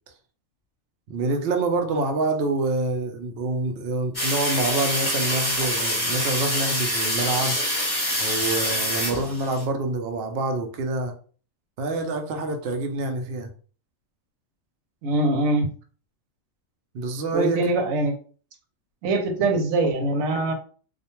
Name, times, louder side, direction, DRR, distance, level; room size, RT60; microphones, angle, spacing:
voice 1, 1.1-7.6 8.2-11.1 11.8-13.5 16.9-17.7, right 2 dB, 60° right, 4 dB, 0.7 m, -26 dB
sound 1, 4.1-9.6, equal, 15° left, 1.1 m, -25 dB
voice 2, 15.0-15.7 17.3-18.1 19.0-20.5, right 2 dB, 90° right, 4 dB, 1.0 m, -23 dB
2.4 x 2.2 x 2.9 m, 0.41 s
omnidirectional pair, 1.3 m